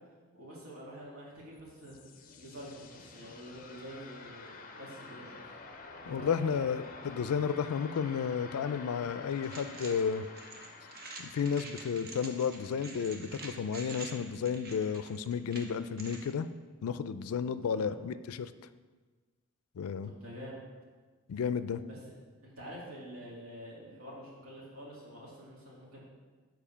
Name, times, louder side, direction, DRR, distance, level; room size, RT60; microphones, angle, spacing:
voice 1, 0.3-2.0 2.4-5.6 6.0-6.7 17.6-17.9 20.0-20.7 21.8-22.1 22.4-26.0, equal, 75° right, -7 dB, 2.6 m, -47 dB
sound 1, 1.5-14.2, left 3 dB, 40° left, 0.6 m, -50 dB
voice 2, 6.1-10.3 11.2-16.5 16.8-18.5 19.8-20.1 21.3-21.8, left 6 dB, 85° left, 13 dB, 0.4 m, -32 dB
sound 2, 9.4-16.3, right 3 dB, 45° right, 0.9 m, -47 dB
7.2 x 4.7 x 5.7 m, 1.4 s
head